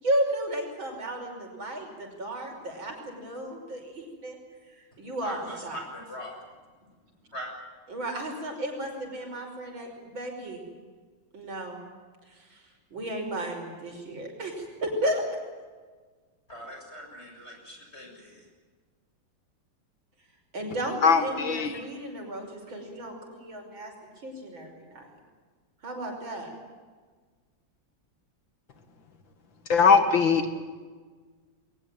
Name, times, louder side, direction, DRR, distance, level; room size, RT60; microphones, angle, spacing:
voice 1, 0.0-4.4 5.0-5.8 7.9-10.6 11.3-11.8 12.5-12.6 12.9-15.2 20.5-23.9 24.2-25.1 25.8-26.5, right 1 dB, 75° right, 2 dB, 6.4 m, -33 dB
voice 2, 5.2-6.4 7.3-7.5 16.5-18.5, equal, 30° left, 1 dB, 7.3 m, -41 dB
voice 3, 21.0-21.7 29.7-30.5, left 5 dB, 75° left, 8 dB, 2.8 m, -20 dB
22.0 x 20.5 x 9.2 m, 1.4 s
omnidirectional pair, 2.1 m